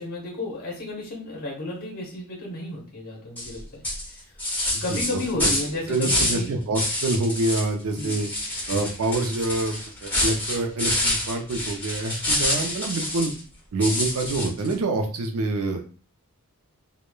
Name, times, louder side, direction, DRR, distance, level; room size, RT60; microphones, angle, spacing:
voice 1, 0.0-4.2 4.8-6.5 8.0-8.2, left 2 dB, 45° left, -3 dB, 0.9 m, -33 dB
sound 1, 3.4-3.5 3.8-6.5 6.7-7.7 8.0-13.4 13.8-14.7, left 1 dB, 10° left, 1.0 m, -27 dB
voice 2, 4.7-5.5 5.9-8.3 8.7-9.8 10.0-13.3 13.7-15.8, right 2 dB, 70° right, 5 dB, 0.4 m, -26 dB
3.0 x 2.1 x 2.2 m, 0.38 s
head